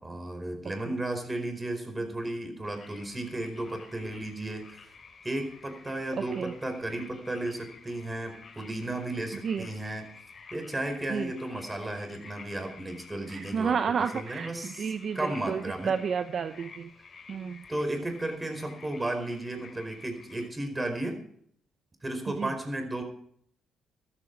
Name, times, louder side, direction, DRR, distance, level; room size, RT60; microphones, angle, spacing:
voice 1, 0.0-4.9 5.2-10.1 10.5-15.9 17.7-21.2 22.0-23.0, right 1 dB, 20° right, 6 dB, 4.7 m, -34 dB
sound 1, 2.6-20.5, left 5 dB, 40° left, 3.9 m, -51 dB
voice 2, 13.3-16.9 17.3-17.6 22.4-22.5, right 6 dB, 55° right, 10 dB, 0.8 m, -31 dB
14.0 x 13.5 x 4.7 m, 0.66 s
cardioid pair, 90°, 0 cm